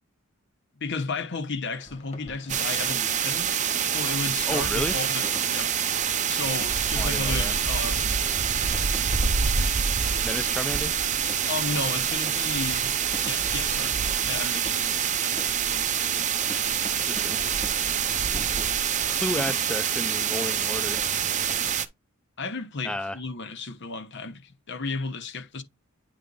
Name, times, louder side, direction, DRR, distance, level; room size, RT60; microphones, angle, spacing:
voice 1, 0.8-3.5 3.9-5.7 6.3-8.1 11.5-12.9 13.3-14.0 14.3-15.9 22.4-25.6, left 4 dB, 60° left, 1.0 m, -33 dB
sound 1, 1.7-21.6, equal, 35° left, 1.5 m, -47 dB
sound 2, 2.5-21.9, right 8 dB, 35° right, 0.7 m, -26 dB
voice 2, 4.5-4.9 6.9-7.6 10.2-10.9 17.0-17.4 19.1-21.0 22.8-23.2, left 1 dB, 5° left, 0.5 m, -32 dB
9.5 x 3.3 x 3.8 m
head